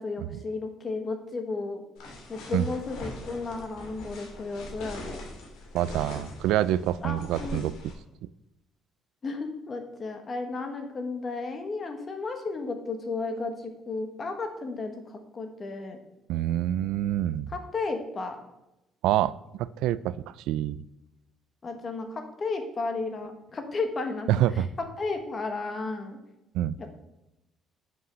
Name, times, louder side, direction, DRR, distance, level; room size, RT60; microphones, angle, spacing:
voice 1, 0.0-1.8 2.3-5.2 7.0-7.6 9.2-16.0 17.5-18.4 21.6-24.6 25.0-26.2 26.8-27.0, left 3 dB, 30° left, 6 dB, 1.4 m, -33 dB
sound 1, 2.0-7.9, left 1 dB, 85° left, 2.6 m, -42 dB
voice 2, 5.7-7.7 16.3-17.5 19.0-19.3 19.6-20.8 24.3-24.7 26.5-26.7, right 12 dB, 85° right, 18 dB, 0.3 m, -26 dB
7.6 x 5.7 x 6.1 m, 0.91 s
cardioid pair, 135°, 0 cm